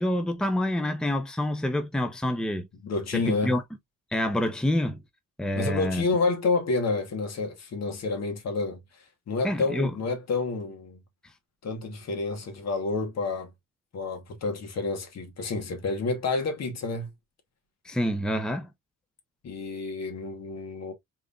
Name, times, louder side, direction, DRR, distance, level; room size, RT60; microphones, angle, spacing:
voice 1, 0.0-2.7 3.1-3.6 4.1-5.0 5.4-6.0 9.4-9.9 17.8-18.7, left 1 dB, 5° left, 0.7 m, -27 dB
voice 2, 2.8-3.6 5.5-8.8 9.3-11.0 11.6-13.5 13.9-17.1 19.4-20.9, left 3 dB, 60° left, 1.6 m, -29 dB
3.7 x 3.4 x 2.5 m
cardioid pair, 90°, 30 cm